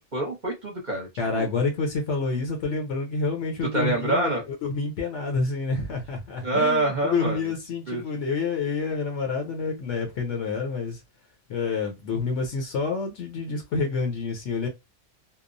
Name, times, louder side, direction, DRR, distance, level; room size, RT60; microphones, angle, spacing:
voice 1, 0.0-1.1 1.3-1.5 3.7-4.4 6.4-7.4 7.9-8.0, right 2 dB, 40° right, 0.8 m, -26 dB
voice 2, 1.2-11.0 11.5-14.7, left 4 dB, 70° left, 1.0 m, -28 dB
2.9 x 2.0 x 2.5 m
omnidirectional pair, 1.3 m